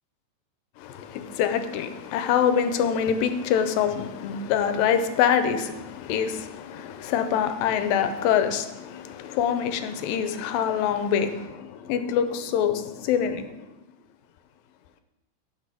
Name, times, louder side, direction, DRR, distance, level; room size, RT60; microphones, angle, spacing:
voice 1, 0.8-13.5, left 8 dB, 85° left, 2.5 m, -25 dB
17.0 x 6.2 x 5.0 m
omnidirectional pair, 4.1 m